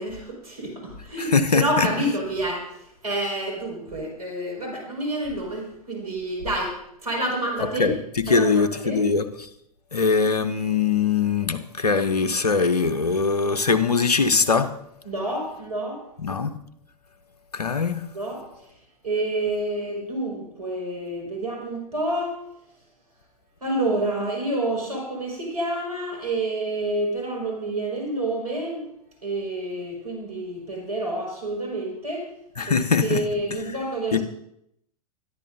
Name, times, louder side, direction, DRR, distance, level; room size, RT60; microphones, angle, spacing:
voice 1, 0.0-2.6 3.0-6.7 7.0-7.9 8.3-9.1 15.0-16.0 18.1-18.4 19.0-22.4 23.6-28.9 29.2-32.3 32.7-34.2, right 1 dB, 90° right, -1 dB, 5.4 m, -28 dB
voice 2, 1.2-1.9 7.8-9.5 9.9-14.7 16.2-16.5 17.5-18.1 32.6-33.2 34.1-34.2, left 5 dB, 90° left, 10 dB, 0.9 m, -22 dB
21.5 x 11.0 x 2.7 m, 0.76 s
figure-of-eight pair, 95°, 19 cm